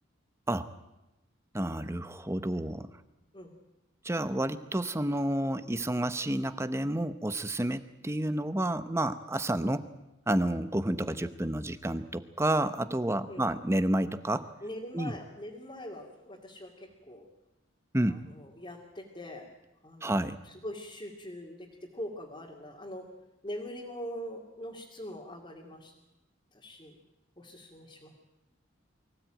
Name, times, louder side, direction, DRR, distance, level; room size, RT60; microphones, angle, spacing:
voice 1, 1.5-2.9 4.0-9.9 10.3-14.5 14.9-15.2 17.9-18.2 20.0-20.4, right 1 dB, 15° right, 12 dB, 0.8 m, -30 dB
voice 2, 14.6-17.3 18.1-19.5 19.8-23.1 23.4-25.9 26.5-27.0 27.4-28.1, equal, 25° left, -2 dB, 2.4 m, -43 dB
24.0 x 16.0 x 9.0 m, 0.95 s
head